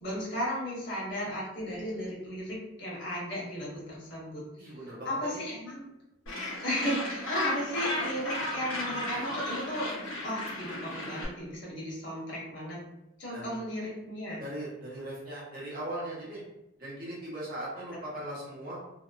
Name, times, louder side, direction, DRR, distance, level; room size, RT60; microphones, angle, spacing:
voice 1, 0.0-4.7 5.0-5.8 6.6-9.9 10.2-12.8 13.2-14.4, equal, 60° left, -6 dB, 1.1 m, -35 dB
voice 2, 4.6-5.4 13.3-13.6 14.4-16.4 16.8-18.8, right 1 dB, 45° right, -5 dB, 0.8 m, -39 dB
Gull seagull, 6.3-11.3, left 1 dB, 80° left, 0.8 m, -34 dB
2.8 x 2.0 x 2.3 m, 0.92 s
head